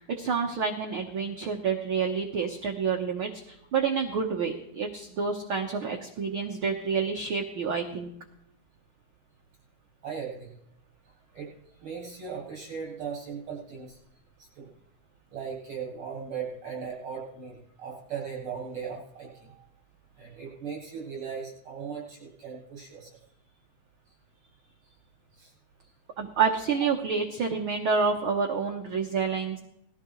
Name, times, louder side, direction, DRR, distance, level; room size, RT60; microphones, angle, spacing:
voice 1, 0.1-8.1 26.2-29.6, right 5 dB, 55° right, 2 dB, 1.5 m, -28 dB
voice 2, 10.0-10.5 11.3-11.5 11.8-14.0 14.4-14.7 15.3-19.7 20.2-23.2 25.4-25.5 26.8-26.9, right 6 dB, 40° right, -4 dB, 8.9 m, -38 dB
20.5 x 15.0 x 3.2 m, 0.78 s
omnidirectional pair, 3.7 m